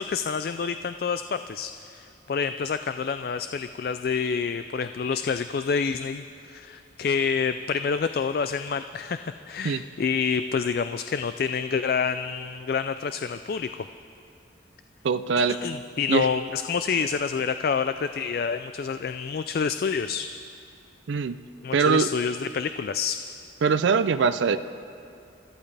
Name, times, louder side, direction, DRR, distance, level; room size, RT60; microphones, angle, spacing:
voice 1, 0.0-13.9 15.4-20.3 21.6-23.2, left 6 dB, 50° left, 10 dB, 0.3 m, -28 dB
voice 2, 15.0-15.6 16.1-16.3 21.1-21.4 21.7-22.1 23.6-24.6, right 5 dB, 75° right, 11 dB, 0.4 m, -22 dB
25.5 x 14.0 x 3.4 m, 2.6 s
head